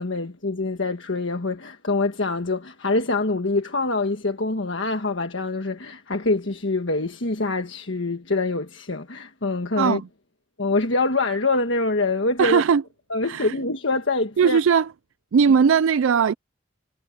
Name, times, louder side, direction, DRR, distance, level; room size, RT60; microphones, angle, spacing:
voice 1, 0.0-10.0 10.6-12.6 13.1-14.6, left 3 dB, 70° left, 1.5 m, -25 dB
voice 2, 9.8-10.1 12.4-12.8 13.2-13.6 14.4-14.9 15.3-16.3, right 6 dB, 80° right, 0.4 m, -19 dB
head